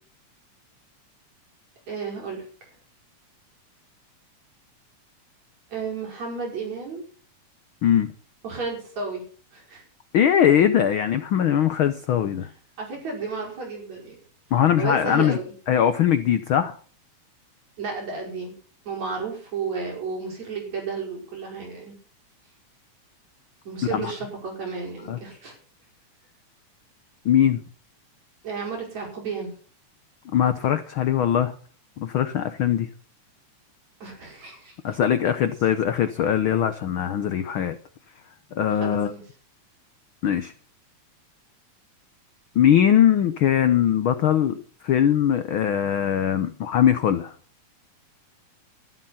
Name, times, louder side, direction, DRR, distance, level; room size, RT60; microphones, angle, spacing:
voice 1, 1.9-2.4 5.7-7.0 8.4-9.2 9.5-9.8 12.8-14.2 14.8-15.5 17.8-18.5 18.9-21.9 23.6-25.6 28.4-29.5 34.0-34.8 38.7-39.2, right 4 dB, 65° right, 0 dB, 6.5 m, -32 dB
voice 2, 7.8-8.1 10.1-12.5 14.5-15.4 15.7-16.7 23.9-24.1 25.1-25.2 27.2-27.6 30.3-31.5 32.0-32.9 34.8-37.8 38.5-39.1 40.2-40.5 42.5-44.6 44.8-47.3, left 9 dB, 70° left, 10 dB, 1.2 m, -21 dB
12.5 x 11.5 x 5.8 m, 0.42 s
omnidirectional pair, 3.4 m